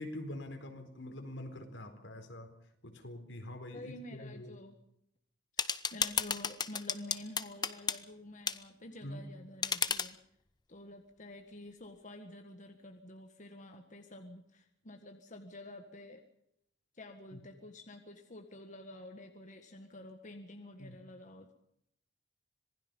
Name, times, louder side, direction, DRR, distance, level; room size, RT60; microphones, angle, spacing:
voice 1, 0.0-2.5 2.8-4.5 9.0-9.2 17.3-17.4 20.8-21.0, left 1 dB, 75° left, 6 dB, 4.4 m, -45 dB
voice 2, 3.7-4.8 5.6-10.2 10.7-16.2 16.9-21.5, left 1 dB, 45° left, 5 dB, 1.8 m, -49 dB
sound 1, 5.6-8.0 8.5-8.6 9.6-10.1, left 6 dB, 25° left, 0.9 m, -33 dB
26.5 x 20.5 x 5.5 m, 0.74 s
head